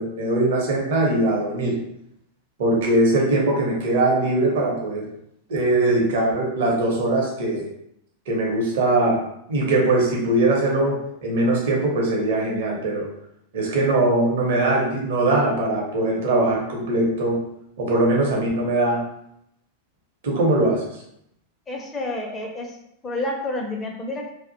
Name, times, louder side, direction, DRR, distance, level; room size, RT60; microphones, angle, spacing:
voice 1, 0.0-1.8 2.6-5.0 5.5-7.7 8.3-9.2 9.5-13.1 13.5-17.4 17.8-19.0 20.2-20.8, right 2 dB, 55° right, -2 dB, 0.7 m, -21 dB
voice 2, 21.7-22.8 23.0-24.3, left 2 dB, 15° left, 0 dB, 0.5 m, -29 dB
2.4 x 2.0 x 2.6 m, 0.77 s
figure-of-eight pair, 90°, 0 cm